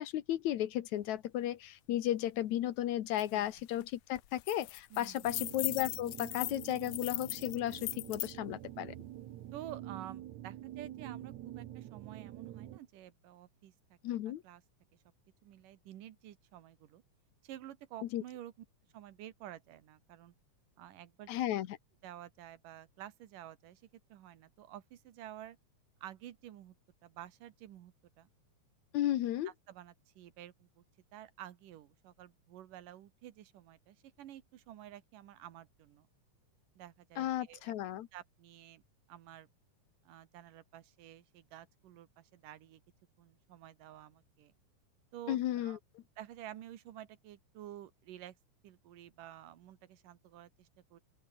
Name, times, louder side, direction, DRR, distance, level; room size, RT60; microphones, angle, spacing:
voice 1, 0.0-9.0 14.0-14.4 18.1-18.2 21.3-21.8 28.9-29.5 37.2-38.1 45.3-45.8, left 12 dB, 70° left, 2.3 m, -34 dB
sound 1, 3.2-3.3 3.6-3.8 4.2-8.3, left 19 dB, 90° left, 2.3 m, -40 dB
voice 2, 4.9-5.3 9.5-14.2 14.4-14.6 15.4-17.0 17.4-18.5 18.9-20.3 20.8-21.3 22.0-23.8 24.1-25.6 26.0-26.8 27.0-28.3 29.4-30.8 31.1-36.1 36.8-37.7 38.1-38.8 39.1-39.5 40.1-42.8 43.2-44.5 45.1-45.8 46.2-48.4 48.6-51.0, right 12 dB, 90° right, 3.0 m, -51 dB
sound 2, 5.2-12.8, right 13 dB, 70° right, 2.3 m, -47 dB
open air
omnidirectional pair, 3.7 m